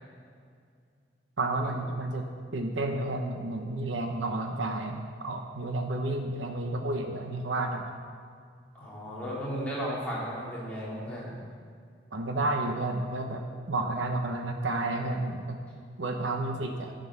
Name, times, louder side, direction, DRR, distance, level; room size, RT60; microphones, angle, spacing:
voice 1, 1.4-2.2 2.5-7.9 12.1-15.6 16.0-16.9, right 2 dB, 90° right, 3 dB, 0.9 m, -31 dB
voice 2, 8.7-11.3, equal, 10° left, -7 dB, 2.8 m, -35 dB
11.5 x 7.8 x 6.0 m, 2.1 s
head